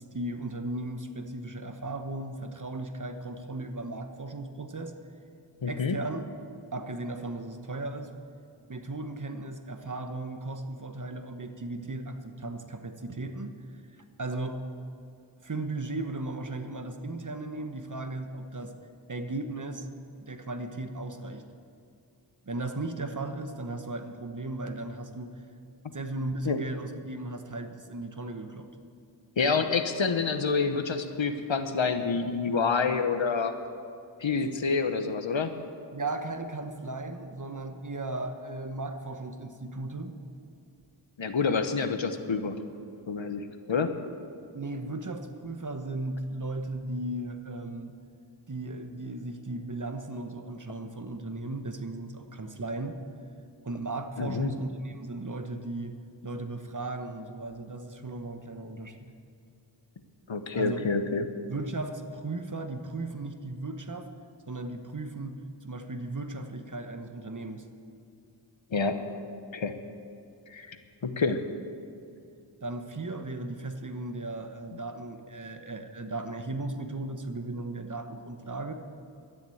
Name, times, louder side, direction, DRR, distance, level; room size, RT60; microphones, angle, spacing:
voice 1, 0.0-4.9 5.7-6.3 6.7-8.1 8.7-13.8 14.2-14.6 15.4-18.7 19.1-19.9 20.2-21.4 22.4-25.3 25.9-28.7 34.4-34.5 35.9-40.1 44.5-47.9 48.5-53.0 53.6-56.0 56.2-59.0 60.5-60.8 61.5-64.1 64.5-67.7 72.6-78.7, right 2 dB, 40° right, 7 dB, 1.1 m, -36 dB
voice 2, 5.6-6.0 26.5-26.6 29.4-33.5 34.2-35.5 41.2-42.6 43.1-43.9 54.2-54.5 60.3-61.3 68.7-69.0 69.5-69.7 70.5-70.8 71.0-71.5, left 4 dB, 80° left, 8 dB, 1.0 m, -28 dB
12.0 x 10.5 x 7.8 m, 2.5 s
wide cardioid pair, 60°, 45 cm